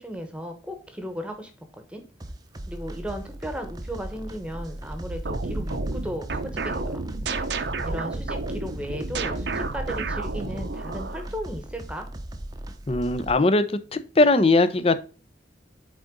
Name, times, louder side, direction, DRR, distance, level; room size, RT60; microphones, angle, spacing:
voice 1, 0.0-2.0 2.7-7.2 7.8-12.1, equal, 5° right, 6 dB, 1.1 m, -36 dB
sound 1, 2.2-13.4, right 1 dB, 20° right, 0.7 m, -38 dB
sound 2, 5.1-11.3, right 3 dB, 70° right, 0.8 m, -31 dB
voice 2, 12.9-13.6 13.9-15.0, left 2 dB, 30° left, 12 dB, 0.6 m, -20 dB
8.4 x 3.8 x 3.8 m, 0.37 s
head